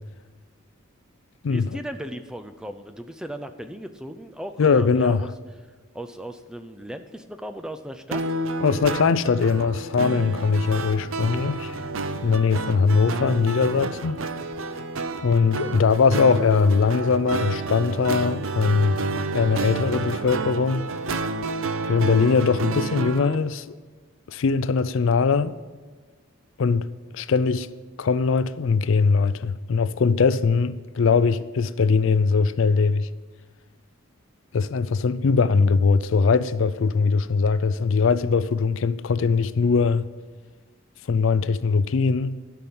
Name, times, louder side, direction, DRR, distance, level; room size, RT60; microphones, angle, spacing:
voice 1, 1.5-5.3 5.9-8.2, right 1 dB, 5° right, 0.4 m, -36 dB
voice 2, 4.6-5.2 8.6-11.8 12.2-14.2 15.2-19.0 19.3-20.9 21.9-23.7 24.3-25.5 26.6-26.9 27.1-27.7 28.0-33.1 34.5-40.1 41.1-42.4, left 5 dB, 65° left, 0.4 m, -21 dB
sound 1, 8.1-23.3, right 3 dB, 70° right, 0.6 m, -30 dB
12.0 x 5.9 x 7.0 m
head